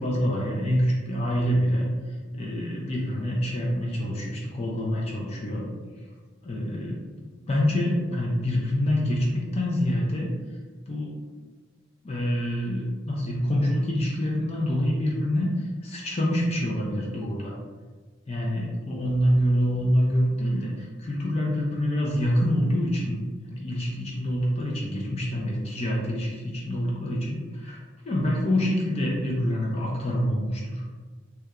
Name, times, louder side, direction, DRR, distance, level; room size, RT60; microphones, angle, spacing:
voice 1, 0.0-1.9 2.3-5.7 6.4-10.3 10.9-11.1 12.0-17.6 18.3-23.2 23.5-27.8 28.0-30.8, equal, 30° left, -3 dB, 0.3 m, -26 dB
2.8 x 2.2 x 2.3 m, 1.4 s
head